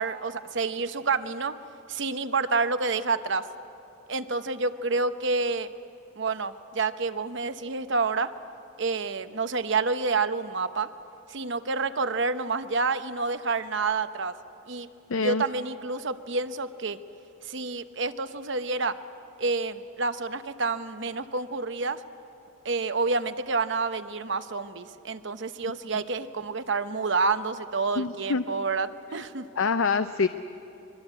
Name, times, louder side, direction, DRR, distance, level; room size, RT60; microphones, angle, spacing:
voice 1, 0.0-1.5 1.9-3.5 4.1-5.7 6.2-8.3 8.8-10.9 11.3-14.4 14.7-14.9 15.2-17.0 17.4-19.0 19.4-22.0 22.6-29.5, right 4 dB, 60° right, 11 dB, 0.9 m, -28 dB
voice 2, 15.1-15.4 28.0-28.4 29.6-30.3, left 4 dB, 80° left, 10 dB, 0.6 m, -25 dB
24.0 x 23.0 x 8.1 m, 2.9 s
head